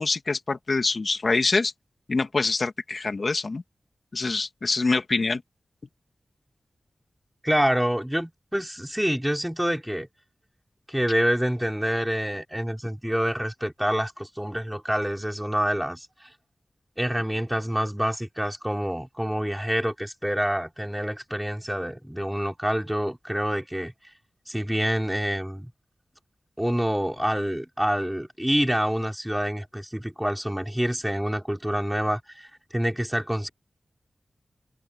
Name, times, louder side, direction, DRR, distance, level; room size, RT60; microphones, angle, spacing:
voice 1, 0.0-1.7 2.1-3.6 4.1-5.4, left 3 dB, 55° left, 2.1 m, -25 dB
voice 2, 7.4-10.1 10.9-16.3 17.0-23.9 24.5-25.7 26.6-33.5, equal, 5° right, 5.2 m, -27 dB
wide cardioid pair, 75°, 0 cm